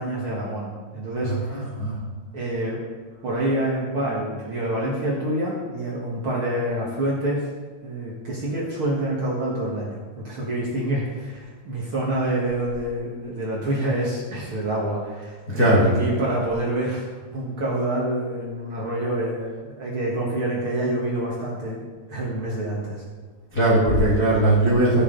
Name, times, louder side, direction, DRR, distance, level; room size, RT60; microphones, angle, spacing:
voice 1, 0.0-1.6 2.3-2.8 3.2-7.4 7.8-23.0, right 1 dB, 60° right, -5 dB, 1.3 m, -27 dB
voice 2, 1.2-2.0 15.5-15.9 23.5-25.0, right 1 dB, 65° left, -7 dB, 0.9 m, -19 dB
15.5 x 6.9 x 3.9 m, 1.4 s
omnidirectional pair, 5.1 m